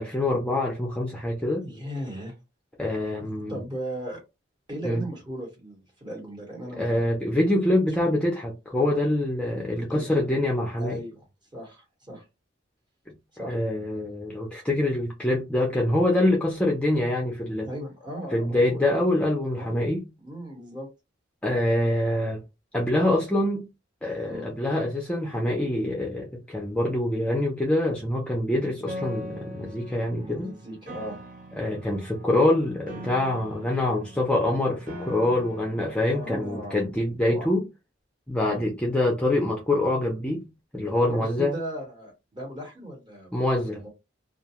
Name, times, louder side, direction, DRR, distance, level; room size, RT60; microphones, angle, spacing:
voice 1, 0.0-1.7 2.8-3.6 4.8-5.0 6.8-11.0 13.4-17.7 18.3-20.0 21.4-22.4 22.7-23.7 24.0-30.5 31.6-37.6 38.3-40.5 40.7-41.6 43.3-43.8, left 1 dB, 5° left, 0.4 m, -25 dB
voice 2, 1.6-2.3 3.5-4.2 4.7-7.0 8.0-8.1 9.7-10.2 10.8-11.3 11.5-12.2 13.4-13.6 17.6-19.1 19.6-19.7 20.2-20.9 24.2-24.5 30.1-31.2 36.1-36.8 37.2-37.5 38.4-38.6 41.1-43.3 43.6-43.9, equal, 25° right, 1.1 m, -37 dB
Piano, 28.9-36.9, equal, 45° right, 0.7 m, -42 dB
2.4 x 2.2 x 2.9 m
head